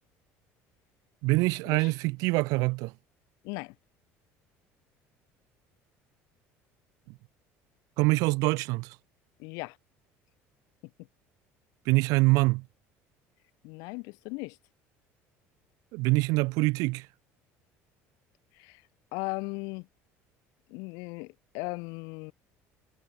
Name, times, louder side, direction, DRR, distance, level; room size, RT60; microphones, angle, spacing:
voice 1, 1.2-2.9 8.0-8.9 11.8-12.6 15.9-17.1, right 25 dB, 75° right, 1.6 m, -25 dB
voice 2, 3.4-3.7 9.4-9.8 13.6-14.6 18.6-18.8 19.1-19.9 20.7-22.3, left 29 dB, 80° left, 4.4 m, -37 dB
supercardioid pair, 100°, 6 cm